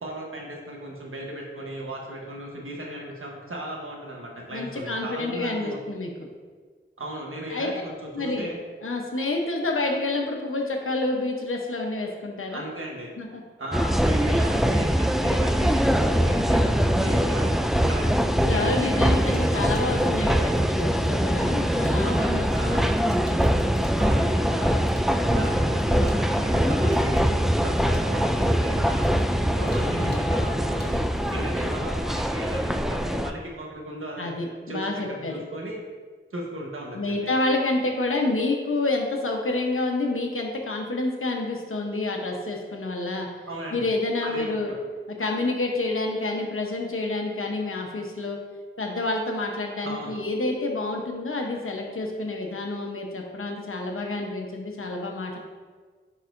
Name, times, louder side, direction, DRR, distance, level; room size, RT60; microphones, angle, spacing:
voice 1, 0.0-5.8 7.0-8.6 12.5-13.1 13.6-17.5 17.9-18.1 18.5-20.0 22.0-22.8 23.9-24.8 25.3-27.2 27.6-31.0 31.3-34.3 34.7-35.8 36.3-37.3 43.5-43.9 44.2-44.8 49.8-50.2, right 1 dB, 85° right, -1 dB, 1.2 m, -36 dB
voice 2, 4.5-6.1 7.5-7.7 8.1-8.5 8.8-12.7 13.2-13.3 18.5-22.8 29.7-30.3 34.2-35.3 36.9-43.3 43.7-44.7 45.1-48.4 48.8-55.4, left 2 dB, 80° left, 1 dB, 1.0 m, -28 dB
sound 1, 13.7-33.3, equal, ahead, 0.3 m, -23 dB
Water tap faucet / Sink (filling or washing), 17.7-32.0, equal, 55° left, 1.1 m, -45 dB
10.0 x 4.2 x 2.7 m, 1.5 s
wide cardioid pair, 45°, 21 cm